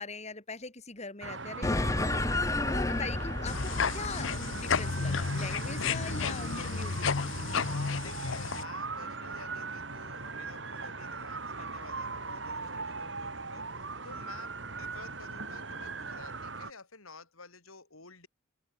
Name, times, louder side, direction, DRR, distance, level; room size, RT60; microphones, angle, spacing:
voice 1, 0.0-7.3, left 3 dB, 30° left, 3.0 m, -42 dB
sound 1, 1.2-16.7, right 4 dB, 60° right, 3.4 m, -40 dB
sound 2, 1.6-6.4, left 2 dB, 15° left, 0.4 m, -32 dB
sound 3, 3.5-8.6, left 5 dB, 65° left, 0.7 m, -32 dB
voice 2, 7.7-14.5 14.8-18.3, left 4 dB, 90° left, 6.4 m, -51 dB
open air
head